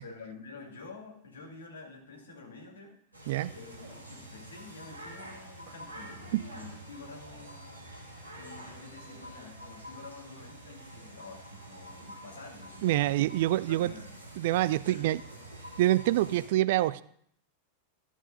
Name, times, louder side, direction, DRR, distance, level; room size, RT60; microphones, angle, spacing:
voice 1, 0.0-3.0 3.5-7.7 8.3-13.2 13.7-14.1 14.8-15.1, left 3 dB, 70° left, 2.1 m, -48 dB
sound 1, 3.1-16.5, right 1 dB, 80° right, 2.1 m, -47 dB
voice 2, 12.8-13.9 14.4-15.2 15.8-17.0, right 15 dB, 50° right, 0.3 m, -26 dB
12.5 x 7.3 x 3.9 m
figure-of-eight pair, 90°, 0 cm